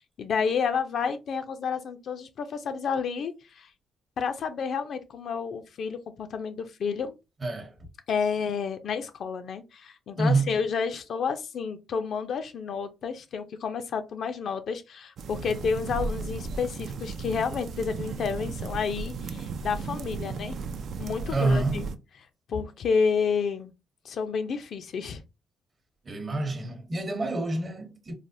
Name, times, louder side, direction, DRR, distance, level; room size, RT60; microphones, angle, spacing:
voice 1, 0.2-3.7 4.2-7.2 8.1-20.6 21.0-21.9 22.5-23.7 24.0-25.2, left 6 dB, 60° left, 0.5 m, -30 dB
voice 2, 7.4-7.7 10.2-10.6 21.3-21.8 26.0-28.1, right 2 dB, 35° right, 0.8 m, -27 dB
sound 1, 15.2-22.0, right 4 dB, 65° right, 0.3 m, -35 dB
3.3 x 2.1 x 2.6 m
cardioid pair, 90°, 0 cm